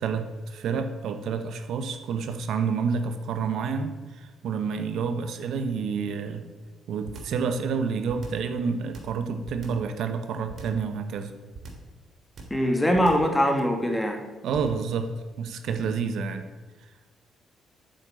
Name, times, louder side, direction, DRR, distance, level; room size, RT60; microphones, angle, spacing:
voice 1, 0.0-6.4 6.9-11.3 14.4-16.4 16.8-16.9, right 5 dB, 75° right, 8 dB, 1.3 m, -29 dB
sound 1, 7.0-7.4 8.1-8.5 8.9-9.9 10.5-10.9 11.5-11.9 12.4-12.7 12.9-13.3 14.5-14.9 15.7-15.9, right 3 dB, 60° right, 3.2 m, -42 dB
voice 2, 12.5-14.2, equal, 10° left, 4 dB, 2.3 m, -22 dB
9.1 x 7.8 x 9.2 m, 1.3 s
cardioid pair, 90°, 0 cm